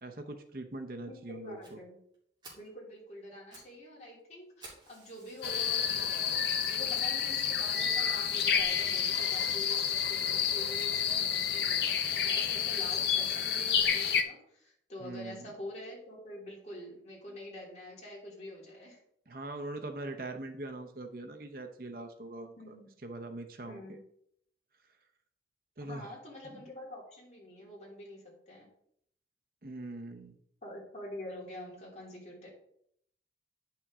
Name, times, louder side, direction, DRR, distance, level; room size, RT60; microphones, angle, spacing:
voice 1, 0.0-1.8 15.0-15.5 19.3-22.8 23.0-23.8 25.8-26.1 26.5-26.6 29.6-30.4, right 2 dB, 55° right, 5 dB, 0.8 m, -42 dB
voice 2, 1.1-2.0 2.5-19.0 22.6-22.9 23.7-24.0 25.8-28.7 30.6-32.5, left 1 dB, 40° left, -3 dB, 2.9 m, -46 dB
Fire, 1.6-1.7 2.1-2.2 2.4-2.7 3.2-3.7 4.0-4.1 4.6-5.9 6.5-6.6 7.2-7.3 7.5-7.6 8.0-8.1, right 2 dB, 25° right, 2.7 m, -53 dB
sound 1, 5.4-14.2, left 7 dB, 70° left, 0.8 m, -29 dB
9.6 x 5.9 x 3.6 m, 0.70 s
head